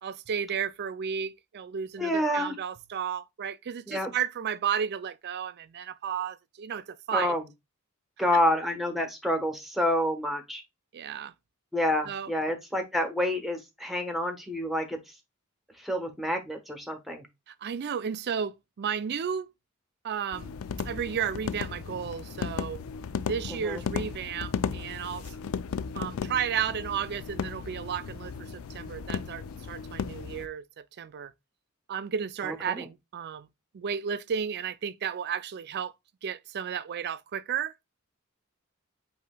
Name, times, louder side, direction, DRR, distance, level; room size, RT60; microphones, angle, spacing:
voice 1, 0.0-7.3 10.9-11.3 12.1-12.3 17.5-19.5 20.0-20.6 20.8-22.8 23.3-25.3 25.9-31.3 31.9-33.5 33.7-35.9 36.2-37.7, right 7 dB, 50° right, 0.4 m, -33 dB
voice 2, 2.0-2.5 3.9-4.1 7.1-7.4 8.2-10.6 11.7-15.0 15.8-17.3 23.5-23.8 32.4-32.9, left 1 dB, ahead, 1.1 m, -28 dB
sound 1, 20.3-30.5, left 6 dB, 70° left, 0.4 m, -35 dB
8.3 x 2.8 x 2.2 m
head